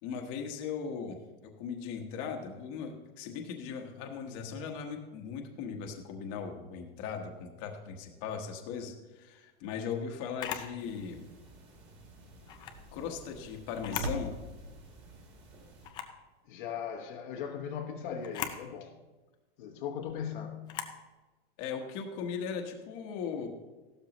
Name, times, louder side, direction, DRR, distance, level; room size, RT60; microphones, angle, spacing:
voice 1, 0.0-11.2 12.9-14.3 21.6-23.5, left 6 dB, 35° left, 1.3 m, -38 dB
sound 1, 9.3-9.4 11.2-11.6 12.0-12.1 13.9-14.8, right 2 dB, 70° right, 1.2 m, -39 dB
Camera, 10.4-10.7 12.4-12.8 13.7-14.2 14.6-14.7 15.8-16.2 18.2-18.6 20.7-21.0, left 10 dB, 15° left, 0.4 m, -38 dB
sound 2, 10.8-15.9, right 1 dB, 20° right, 2.4 m, -53 dB
voice 2, 16.4-19.0 19.6-20.7, left 8 dB, 55° left, 1.1 m, -38 dB
15.0 x 12.5 x 3.0 m
supercardioid pair, 165°, 30 cm